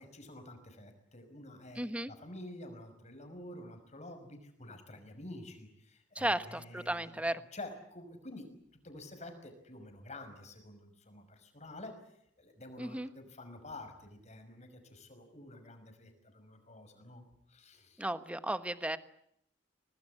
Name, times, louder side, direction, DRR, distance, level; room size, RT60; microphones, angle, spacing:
voice 1, 0.0-8.5 8.8-12.0 12.4-17.2 17.5-18.0, left 1 dB, 40° left, 7 dB, 5.9 m, -49 dB
voice 2, 1.7-2.1 6.1-7.4 12.8-13.1 18.0-19.0, right 1 dB, 5° right, 11 dB, 1.2 m, -34 dB
25.0 x 19.5 x 10.0 m, 0.74 s
head